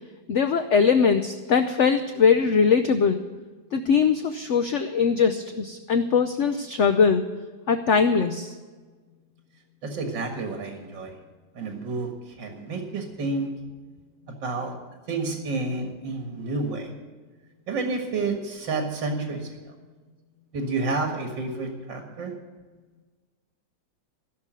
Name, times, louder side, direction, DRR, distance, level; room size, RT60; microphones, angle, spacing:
voice 1, 0.3-3.2 3.7-7.2 7.7-8.5, left 6 dB, 60° left, 8 dB, 0.8 m, -21 dB
voice 2, 9.8-11.1 11.5-12.1 12.4-13.5 14.3-14.7 15.1-16.9 17.7-19.6 20.5-22.3, right 3 dB, 85° right, 3 dB, 2.5 m, -30 dB
15.5 x 6.8 x 9.0 m, 1.4 s
omnidirectional pair, 2.0 m